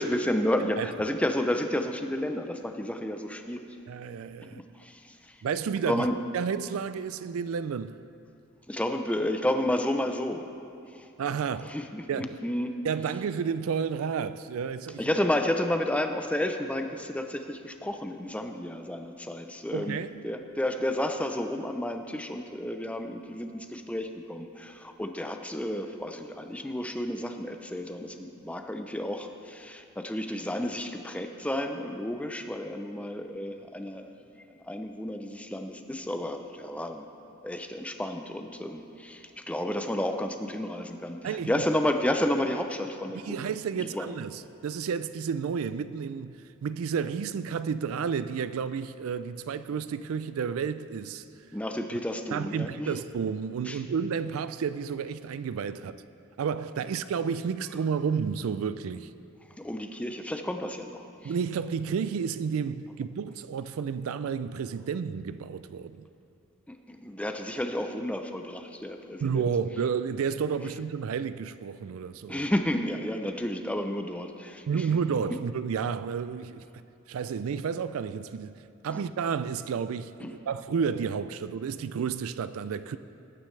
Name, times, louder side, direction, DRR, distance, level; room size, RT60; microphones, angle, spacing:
voice 1, 0.0-3.6 4.5-5.3 5.8-6.1 8.7-10.5 10.9-11.1 11.7-12.8 15.0-34.1 34.7-37.1 37.4-43.4 43.7-44.1 51.5-53.0 53.7-53.8 59.6-61.3 66.7-69.4 72.3-74.9 78.9-79.0 80.2-80.3, left 1 dB, 5° left, 0.5 m, -31 dB
voice 2, 3.9-4.6 5.4-6.1 6.3-8.0 11.2-11.8 12.1-12.4 12.8-15.2 19.7-20.1 41.2-41.6 43.1-51.2 52.3-56.0 56.4-59.1 61.2-66.0 69.2-72.5 74.7-76.8 77.1-83.0, right 6 dB, 70° right, 0.4 m, -31 dB
18.5 x 9.5 x 3.2 m
head